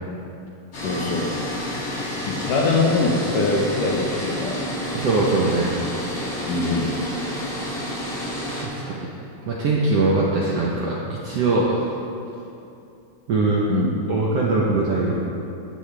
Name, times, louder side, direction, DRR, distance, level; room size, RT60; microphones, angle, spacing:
sound 1, 0.7-8.6, left 1 dB, 35° left, 2.7 m, -30 dB
voice 1, 0.8-1.3 2.3-4.6 6.5-7.0 13.7-13.9, left 3 dB, 70° left, 0 dB, 2.6 m, -22 dB
voice 2, 4.9-5.8 8.5-9.0 9.5-11.9 13.3-13.7 14.1-15.2, right 3 dB, 65° right, -4 dB, 1.6 m, -21 dB
14.5 x 11.0 x 3.4 m, 2.7 s
omnidirectional pair, 4.1 m